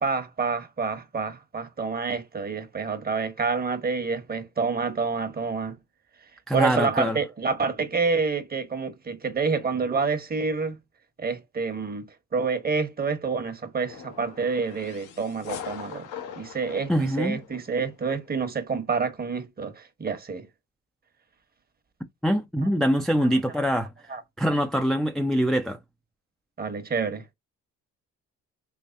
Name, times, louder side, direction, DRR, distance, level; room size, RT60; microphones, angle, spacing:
voice 1, 0.0-5.8 6.5-10.8 11.2-12.1 12.3-16.1 16.4-20.5 24.1-24.2 26.6-27.2, right 4 dB, 30° right, 1.0 m, -28 dB
voice 2, 6.5-7.2 16.9-17.4 22.2-23.9 24.4-25.8, equal, ahead, 0.4 m, -24 dB
sound 1, 13.8-17.9, left 7 dB, 90° left, 0.9 m, -41 dB
3.4 x 3.2 x 2.5 m
cardioid pair, 90°, 30 cm